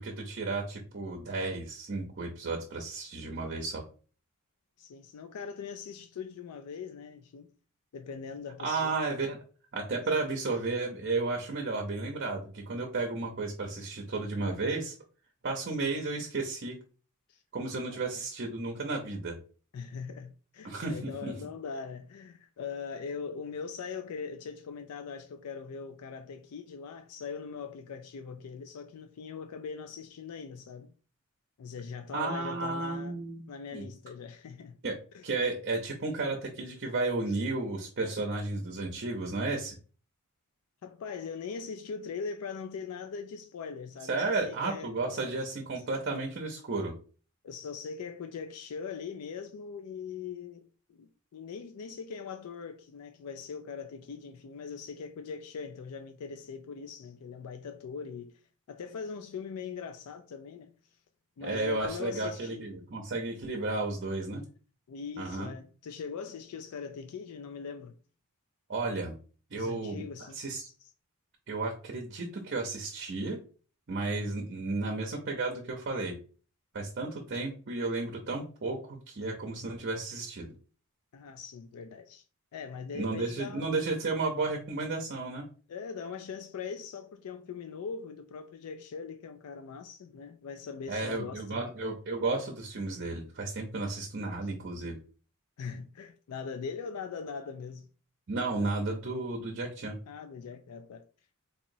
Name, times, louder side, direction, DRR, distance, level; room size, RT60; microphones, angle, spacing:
voice 1, 0.0-3.8 8.6-9.4 9.7-15.0 15.4-16.8 17.5-19.4 20.6-21.4 32.1-33.5 33.7-33.8 34.8-35.0 35.2-39.8 44.0-46.9 61.4-64.4 65.2-65.5 68.7-69.2 69.5-70.0 70.3-70.7 71.5-73.4 73.9-76.2 76.7-80.5 82.9-85.4 90.9-95.0 98.3-100.0, right 3 dB, 50° right, 0.7 m, -33 dB
voice 2, 4.8-7.5 7.9-8.9 15.7-15.8 17.3-17.4 17.9-18.1 19.7-30.9 31.6-33.2 33.5-34.8 35.1-35.3 37.3-37.4 40.8-45.4 45.8-45.9 47.4-58.4 58.7-60.7 61.4-62.7 64.9-67.9 69.5-70.4 70.6-70.9 81.1-82.3 82.5-83.7 85.7-91.7 94.4-94.5 95.6-97.9 100.1-101.0, left 5 dB, 85° left, 0.4 m, -41 dB
4.1 x 2.9 x 2.6 m
head